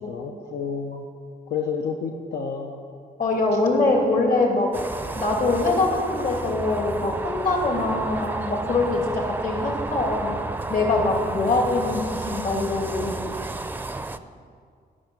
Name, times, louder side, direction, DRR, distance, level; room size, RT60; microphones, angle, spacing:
voice 1, 0.0-1.1 1.5-2.8, left 6 dB, 90° left, 2 dB, 1.0 m, -30 dB
voice 2, 3.2-4.8 5.1-10.4 10.7-13.2, left 2 dB, 60° left, 0 dB, 2.8 m, -23 dB
sound 1, 4.7-14.2, right 2 dB, 10° right, 0.4 m, -32 dB
17.0 x 6.2 x 9.2 m, 2.2 s
wide cardioid pair, 155°, 17 cm